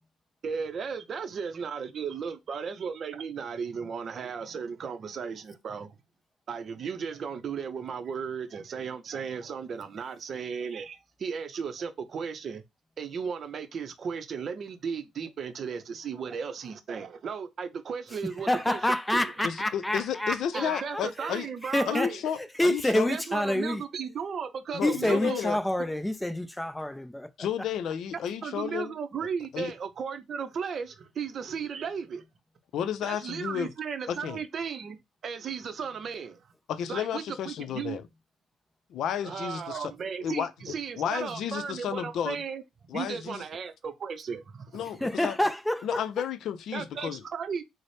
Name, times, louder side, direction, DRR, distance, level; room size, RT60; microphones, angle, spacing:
voice 1, 0.4-6.0 6.5-12.6 13.0-18.8 19.1-19.3 20.5-22.2 23.1-25.4 28.4-32.2 33.0-35.0 35.2-36.5 36.9-38.0 39.2-42.6 42.9-44.8 46.7-47.6, right 6 dB, 50° right, 0.6 m, -35 dB
voice 2, 18.4-22.1 22.4-23.8 24.8-27.3 45.0-46.0, left 1 dB, 5° left, 0.5 m, -28 dB
voice 3, 19.4-21.5 21.9-23.1 24.7-25.6 27.4-28.9 29.5-29.7 32.7-33.7 34.1-34.4 36.7-38.0 38.9-39.9 40.2-42.4 42.9-43.4 44.7-45.4 45.8-47.2, left 9 dB, 65° left, 0.4 m, -32 dB
4.0 x 2.0 x 3.2 m
cardioid pair, 95°, 0 cm